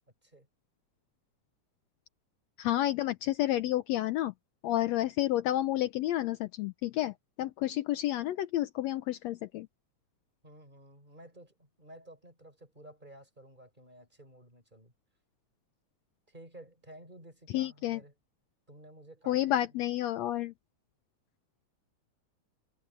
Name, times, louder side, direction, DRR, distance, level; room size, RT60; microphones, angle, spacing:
voice 1, 2.6-4.3 4.6-9.7 17.5-18.0 19.3-20.5, left 14 dB, 75° left, 1.8 m, -30 dB
voice 2, 10.4-14.9 16.3-18.2 18.7-19.7, right 1 dB, 15° right, 4.7 m, -53 dB
omnidirectional pair, 3.3 m